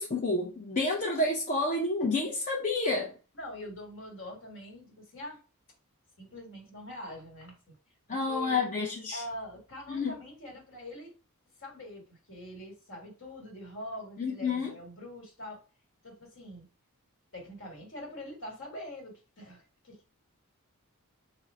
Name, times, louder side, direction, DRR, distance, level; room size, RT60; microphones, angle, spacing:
voice 1, 0.0-3.1 8.1-9.2 9.9-10.1 14.2-14.7, left 3 dB, 35° left, 0.5 m, -29 dB
voice 2, 3.3-5.4 6.2-7.7 8.3-8.6 9.1-11.1 11.6-15.6 16.0-16.7 17.3-20.1, equal, 55° left, 1.3 m, -44 dB
3.7 x 2.0 x 4.1 m
head